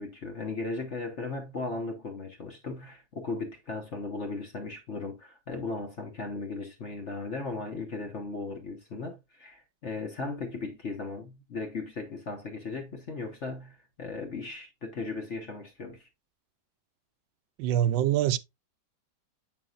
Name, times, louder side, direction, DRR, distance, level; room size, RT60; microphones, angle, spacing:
voice 1, 0.0-16.1, left 3 dB, 45° left, 1.2 m, -37 dB
voice 2, 17.6-18.4, right 11 dB, 85° right, 1.3 m, -24 dB
7.6 x 6.0 x 2.4 m
omnidirectional pair, 2.0 m